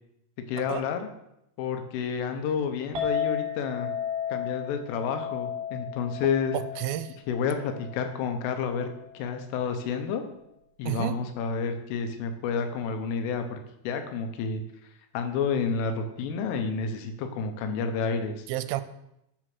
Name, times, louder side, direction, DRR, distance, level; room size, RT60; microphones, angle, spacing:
voice 1, 0.5-1.1 1.6-3.9 4.3-6.6 7.3-10.2 10.8-14.6 15.1-18.5, left 5 dB, 80° left, 6 dB, 3.5 m, -30 dB
Chink clink, 3.0-9.2, left 8 dB, 45° right, 4.2 m, -34 dB
voice 2, 6.5-7.2 10.8-11.2 18.5-18.8, right 14 dB, 90° right, 12 dB, 3.3 m, -31 dB
12.5 x 4.5 x 6.1 m, 0.82 s
omnidirectional pair, 5.7 m